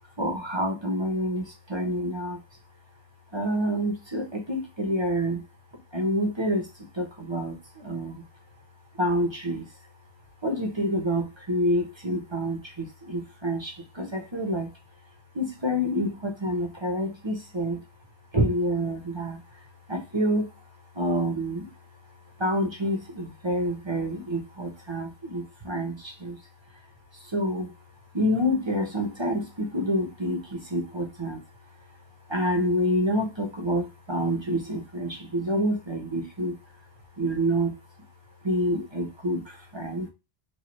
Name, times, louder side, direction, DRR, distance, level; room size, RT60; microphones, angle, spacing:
voice 1, 0.0-2.6 3.3-5.5 5.7-8.6 8.9-9.9 10.4-40.1, equal, 30° right, 3 dB, 0.8 m, -28 dB
4.8 x 2.4 x 2.9 m, 0.26 s
omnidirectional pair, 1.1 m